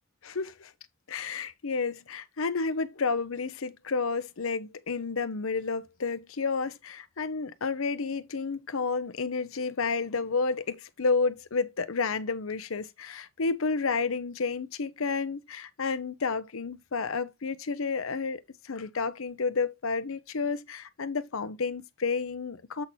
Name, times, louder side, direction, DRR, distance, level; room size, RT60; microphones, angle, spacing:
voice 1, 0.2-0.7 1.1-22.8, left 4 dB, 85° left, 0.7 m, -31 dB
7.6 x 4.2 x 4.4 m
head